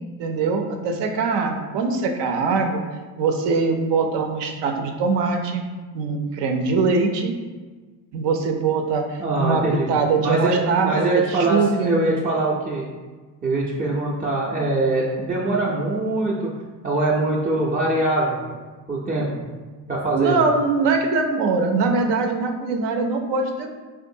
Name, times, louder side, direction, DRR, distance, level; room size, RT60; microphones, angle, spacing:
voice 1, 0.2-2.8 3.2-5.6 5.9-7.3 8.1-11.9 20.1-23.8, right 4 dB, 60° right, 4 dB, 0.6 m, -22 dB
voice 2, 9.2-9.9 10.2-12.9 13.4-16.5 16.8-18.4 18.9-19.5 19.9-20.4, right 2 dB, 20° right, -5 dB, 0.5 m, -23 dB
3.5 x 2.5 x 2.6 m, 1.4 s
hypercardioid pair, 65°, 49 cm